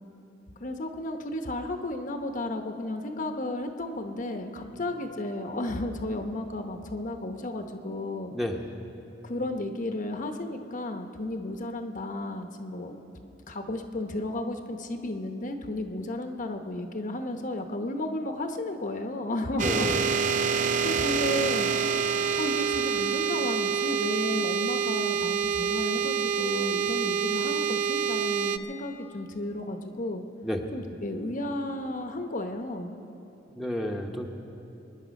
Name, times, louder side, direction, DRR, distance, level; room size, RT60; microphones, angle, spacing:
voice 1, 0.6-8.3 9.2-13.0 13.5-19.9 20.6-21.7 22.4-30.2 30.7-33.0, left 1 dB, 45° left, 5 dB, 0.9 m, -33 dB
voice 2, 8.3-8.6 19.6-20.1 21.7-22.1 30.4-30.6 33.5-34.3, equal, ahead, 0 dB, 1.0 m, -32 dB
sound 1, 19.6-28.6, right 6 dB, 45° right, 0.5 m, -27 dB
24.5 x 10.5 x 5.2 m, 2.9 s
head